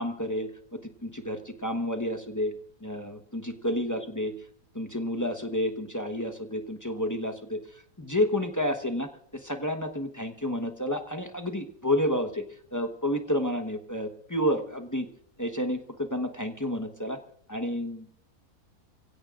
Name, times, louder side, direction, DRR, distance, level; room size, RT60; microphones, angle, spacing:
voice 1, 0.0-2.5 2.8-4.3 4.7-7.6 8.0-12.4 12.7-15.1 15.4-17.2 17.5-18.1, left 1 dB, 15° left, 5 dB, 1.0 m, -30 dB
29.0 x 16.5 x 2.5 m, 0.64 s
omnidirectional pair, 1.6 m